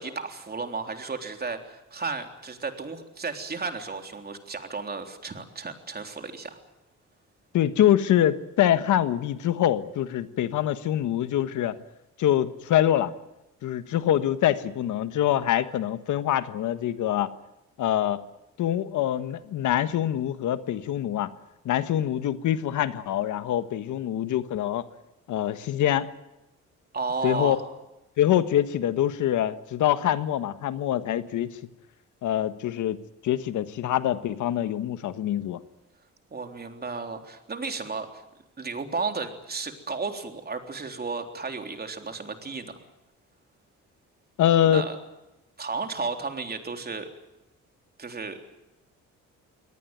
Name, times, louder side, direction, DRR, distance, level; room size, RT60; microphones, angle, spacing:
voice 1, 0.0-6.6 26.9-27.6 36.3-38.2 38.6-42.8 44.7-45.0 45.6-47.1 48.0-48.4, right 4 dB, 30° right, 5 dB, 3.6 m, -33 dB
voice 2, 7.5-11.8 12.2-13.1 13.6-17.3 17.8-18.2 18.6-21.3 21.6-24.9 25.3-26.1 27.2-27.6 28.2-31.6 32.2-33.0 33.2-35.6 44.4-44.9, left 11 dB, 75° left, 12 dB, 1.4 m, -24 dB
23.5 x 18.5 x 9.3 m, 0.95 s
cardioid pair, 90°, 30 cm